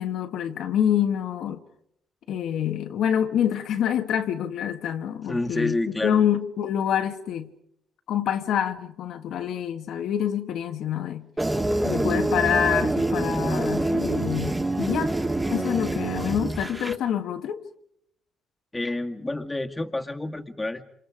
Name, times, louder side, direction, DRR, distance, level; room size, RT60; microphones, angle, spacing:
voice 1, 0.0-1.6 2.3-7.5 8.1-11.3 11.8-15.1 15.5-17.6, left 9 dB, 75° left, 1.4 m, -26 dB
voice 2, 5.3-6.2 18.7-20.8, left 2 dB, 15° left, 1.9 m, -28 dB
sound 1, 11.4-16.9, right 1 dB, 15° right, 2.2 m, -26 dB
28.5 x 26.5 x 5.0 m
cardioid pair, 90°, 0 cm